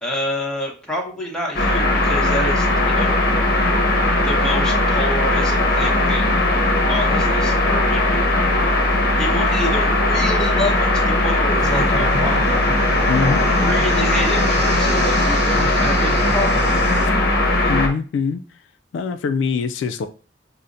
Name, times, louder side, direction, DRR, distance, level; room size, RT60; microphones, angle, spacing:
voice 1, 0.0-3.1 4.2-6.3 6.9-8.2 9.1-16.8 17.3-17.8, equal, 5° left, 0.8 m, -28 dB
sound 1, 1.5-17.9, left 1 dB, 55° left, 0.7 m, -18 dB
sound 2, 11.6-17.1, right 2 dB, 60° right, 0.6 m, -30 dB
voice 2, 13.1-13.4 17.7-18.4 18.9-20.1, left 5 dB, 70° left, 0.3 m, -22 dB
5.5 x 2.0 x 2.5 m
head